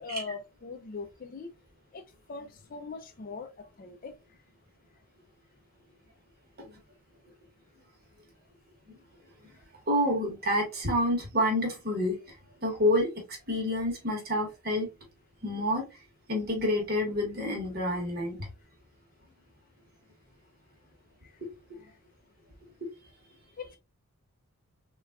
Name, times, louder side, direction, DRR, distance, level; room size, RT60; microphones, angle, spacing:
voice 1, 0.0-1.5 1.9-3.5 3.8-4.1 21.2-21.3 23.6-23.8, left 4 dB, 40° left, 0.3 m, -41 dB
voice 2, 9.9-12.2 12.6-14.9 15.4-15.8 16.3-18.5 22.8-22.9, left 1 dB, 45° right, 1.0 m, -28 dB
3.4 x 2.3 x 2.2 m
head